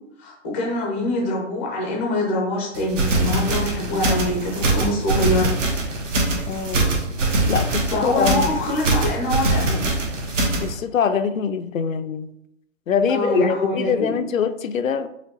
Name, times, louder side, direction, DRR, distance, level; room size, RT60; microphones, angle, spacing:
voice 1, 0.2-5.5 7.7-9.8 13.1-14.2, left 1 dB, 10° left, -2 dB, 0.4 m, -24 dB
sound 1, 2.8-10.7, right 2 dB, 70° right, 1.2 m, -23 dB
voice 2, 6.5-7.0 7.5-8.5 10.6-12.3 12.9-15.1, left 7 dB, 90° left, 9 dB, 0.5 m, -23 dB
4.9 x 3.0 x 3.0 m, 0.80 s
hypercardioid pair, 140°, 39 cm